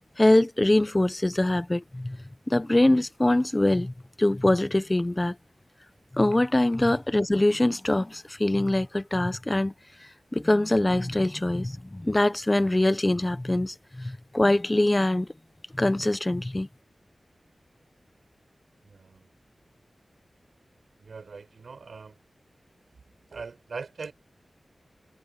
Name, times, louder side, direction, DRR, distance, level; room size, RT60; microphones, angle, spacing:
voice 1, 0.2-2.2 2.5-3.9 4.2-5.3 6.1-9.7 10.3-15.3 15.8-16.7, left 1 dB, 20° left, 1.0 m, -23 dB
voice 2, 18.8-19.3 21.0-22.2 23.3-24.1, right 4 dB, 85° right, 6.7 m, -41 dB
wide cardioid pair, 70°, 0 cm